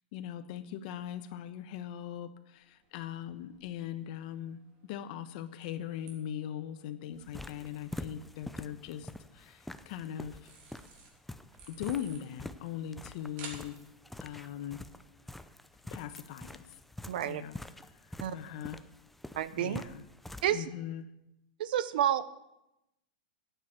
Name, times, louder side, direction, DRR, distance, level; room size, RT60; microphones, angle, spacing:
voice 1, 0.1-10.5 11.7-13.8 14.2-14.8 15.9-16.8 17.2-17.6 18.1-18.8 19.5-20.0 20.5-21.1, left 10 dB, 50° left, 11 dB, 1.0 m, -40 dB
sound 1, 2.5-16.6, right 4 dB, 45° right, 3.3 m, -57 dB
sound 2, 7.2-20.6, left 1 dB, 5° left, 0.5 m, -46 dB
voice 2, 17.1-17.4 18.2-18.4 19.3-19.8 20.4-20.7 21.6-22.4, right 11 dB, 65° right, 15 dB, 0.8 m, -30 dB
11.5 x 9.4 x 7.3 m, 0.88 s
supercardioid pair, 145°, 5 cm